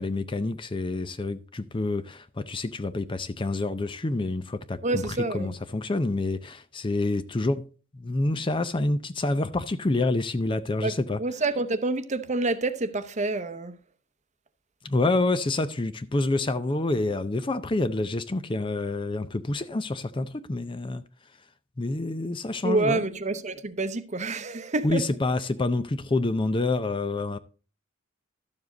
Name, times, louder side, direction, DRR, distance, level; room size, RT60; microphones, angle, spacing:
voice 1, 0.0-7.6 7.9-11.2 14.8-21.0 21.8-23.1 24.8-27.4, left 2 dB, 25° left, 0.5 m, -27 dB
voice 2, 4.8-5.5 10.8-10.9 11.2-13.8 22.6-25.0, right 2 dB, 35° right, 0.8 m, -27 dB
12.5 x 7.3 x 3.9 m
head